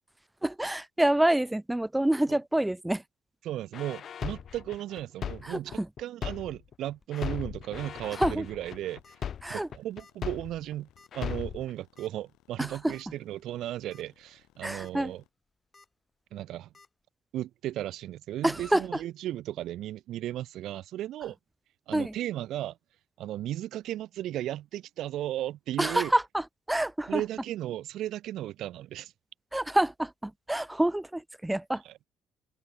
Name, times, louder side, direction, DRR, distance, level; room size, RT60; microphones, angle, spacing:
voice 1, 0.4-3.0 5.4-5.9 8.2-8.5 9.4-9.7 12.6-12.9 14.6-15.1 18.4-18.8 21.9-22.1 25.8-27.2 29.5-31.8, right 1 dB, 10° right, 1.0 m, -27 dB
voice 2, 3.4-9.2 9.5-10.9 11.1-15.2 16.3-16.7 17.3-21.4 21.9-22.8 23.2-26.1 27.1-29.1 31.8-31.9, right 13 dB, 65° right, 0.7 m, -35 dB
sound 1, 3.7-6.7 7.1-10.7 11.1-11.7, left 8 dB, 55° left, 1.1 m, -37 dB
sound 2, 6.9-7.3 8.1-8.4 8.6-8.7 9.0-9.2 10.0-10.3 11.0-11.1 12.0-12.1 12.6-12.7 12.9-13.0 13.7-14.0 14.5-14.9 15.7-15.9 16.7-16.9, left 4 dB, 30° left, 3.8 m, -57 dB
sound 3, 8.7-15.3, left 18 dB, 75° left, 6.6 m, -66 dB
hypercardioid pair, 55°, 0 cm